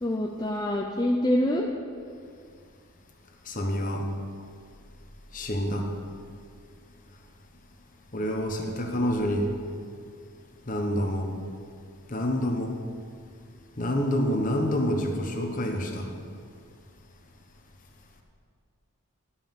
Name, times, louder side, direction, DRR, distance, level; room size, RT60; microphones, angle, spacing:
voice 1, 0.0-1.7, left 1 dB, 20° left, -1 dB, 0.5 m, -25 dB
voice 2, 3.5-4.1 5.3-5.9 8.1-9.5 10.7-11.3 12.1-12.7 13.8-16.1, equal, 35° left, 2 dB, 1.1 m, -27 dB
11.5 x 5.7 x 7.2 m, 2.2 s
head